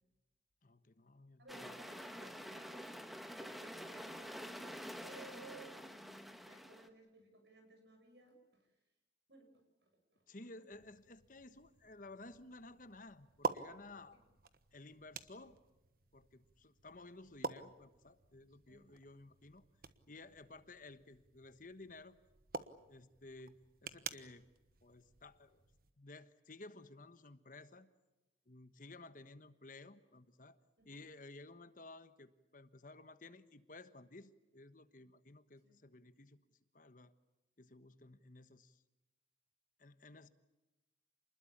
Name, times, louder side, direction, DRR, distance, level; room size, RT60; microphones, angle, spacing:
voice 1, 0.6-1.8 10.3-14.2 14.7-15.6 16.1-19.7 20.1-22.2 22.9-24.5 24.8-25.6 26.0-27.9 28.5-30.6 30.9-36.4 36.7-37.1 37.6-38.8 39.8-40.3, left 2 dB, 50° left, 12 dB, 1.3 m, -55 dB
voice 2, 1.4-8.7 9.3-10.2 10.7-10.8 18.7-18.9 30.8-31.0 35.6-35.8, right 2 dB, 70° right, 5 dB, 7.8 m, -59 dB
sound 1, 1.5-6.9, equal, ahead, 1.5 m, -48 dB
sound 2, 10.7-25.9, right 4 dB, 55° right, 1.3 m, -49 dB
28.0 x 20.5 x 8.7 m, 1.0 s
head